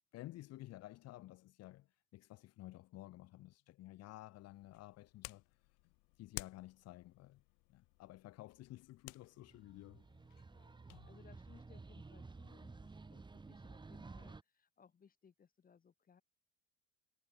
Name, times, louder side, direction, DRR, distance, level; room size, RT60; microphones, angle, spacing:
voice 1, 0.1-5.4 6.2-7.4 7.7-10.1, left 17 dB, 50° left, 1.7 m, -53 dB
sound 1, 4.3-11.1, left 32 dB, 65° left, 1.1 m, -55 dB
sound 2, 9.4-14.4, right 3 dB, 15° right, 7.1 m, -53 dB
voice 2, 10.5-16.2, left 7 dB, 25° left, 6.6 m, -65 dB
supercardioid pair, 120°, 32 cm